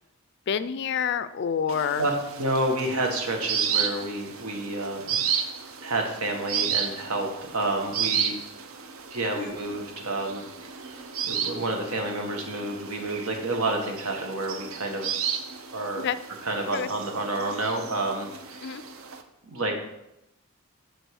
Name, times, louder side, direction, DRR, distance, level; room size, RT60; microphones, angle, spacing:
voice 1, 0.5-2.1 9.3-9.6 16.0-16.2 16.7-16.9 18.6-18.8, left 7 dB, 50° left, 15 dB, 0.3 m, -28 dB
sound 1, 1.7-19.2, right 7 dB, 65° right, 0.7 m, -33 dB
voice 2, 2.4-5.2 5.8-8.3 9.1-15.2 15.7-16.0 16.4-18.7 19.4-19.8, right 2 dB, 85° right, 2 dB, 1.5 m, -29 dB
6.3 x 5.3 x 6.3 m, 0.87 s
head